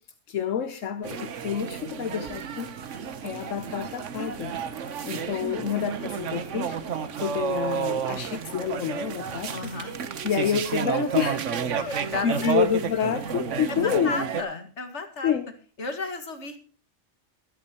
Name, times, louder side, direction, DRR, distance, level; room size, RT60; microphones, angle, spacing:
voice 1, 0.3-2.7 3.2-4.5 5.0-6.9 7.2-9.7 10.2-11.4 11.8-14.2 15.2-15.5, left 8 dB, 80° left, 9 dB, 1.2 m, -28 dB
sound 1, 1.0-14.4, right 7 dB, 70° right, 1.3 m, -31 dB
voice 2, 9.5-10.0 11.8-12.6 13.7-15.3 15.8-16.6, left 3 dB, 60° left, 7 dB, 2.2 m, -33 dB
23.5 x 8.6 x 2.9 m, 0.38 s
omnidirectional pair, 1.3 m